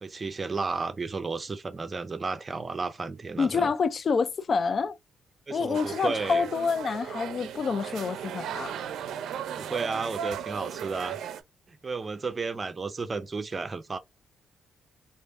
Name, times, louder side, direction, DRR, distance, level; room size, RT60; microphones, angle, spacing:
voice 1, 0.0-3.7 5.5-6.5 9.6-11.2 11.7-14.0, right 4 dB, 30° right, 0.5 m, -33 dB
voice 2, 3.4-5.0 5.5-8.7, left 5 dB, 45° left, 0.3 m, -27 dB
sound 1, 5.7-11.4, right 9 dB, 75° right, 0.4 m, -36 dB
3.1 x 2.5 x 2.4 m
cardioid pair, 90°, 0 cm